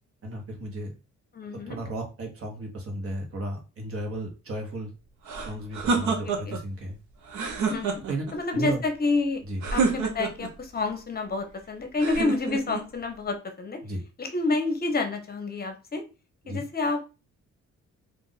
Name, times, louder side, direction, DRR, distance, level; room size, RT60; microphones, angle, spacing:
voice 1, 0.2-0.9 1.5-4.9 5.4-7.0 8.1-8.3 8.5-8.8 9.4-9.6 13.8-14.0 16.4-16.6, right 1 dB, 50° right, 2 dB, 1.2 m, -34 dB
voice 2, 1.3-1.8 6.0-6.5 7.7-8.0 8.3-9.4 9.7-13.8 14.2-16.0 16.5-17.1, left 3 dB, 30° left, 6 dB, 0.8 m, -29 dB
sound 1, 5.3-6.6 7.3-8.3 9.6-10.5 12.0-12.9, right 4 dB, 70° right, 0.8 m, -28 dB
2.5 x 2.4 x 3.9 m, 0.31 s
cardioid pair, 90°, 30 cm